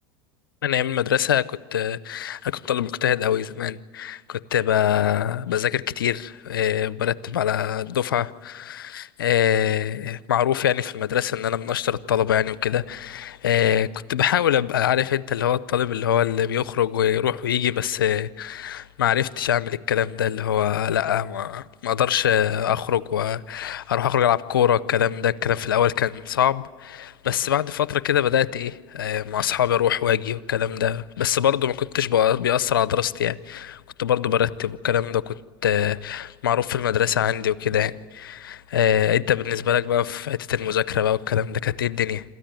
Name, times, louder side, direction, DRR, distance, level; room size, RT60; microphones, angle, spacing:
voice 1, 0.6-35.3 35.6-42.2, left 10 dB, 90° left, 0.6 m, -23 dB
27.0 x 14.0 x 9.1 m
hypercardioid pair, 95°, 11 cm